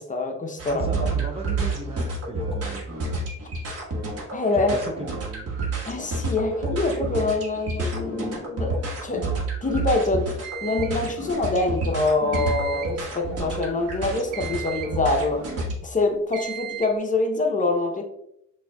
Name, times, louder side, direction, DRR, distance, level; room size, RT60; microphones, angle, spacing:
voice 1, 0.0-0.9 4.3-4.8 5.9-9.3 9.6-10.3 10.6-15.5 15.8-18.0, left 2 dB, 25° left, 3 dB, 0.7 m, -25 dB
sound 1, 0.6-15.7, right 2 dB, 50° right, 1.4 m, -29 dB
voice 2, 0.7-2.9 4.5-5.6, right 3 dB, 20° right, 2 dB, 0.4 m, -37 dB
sound 2, 10.4-11.0 12.3-13.0 14.3-15.0 16.3-17.0, right 11 dB, 85° right, 0.7 m, -36 dB
5.2 x 2.7 x 2.2 m, 0.78 s
cardioid pair, 90°, 30 cm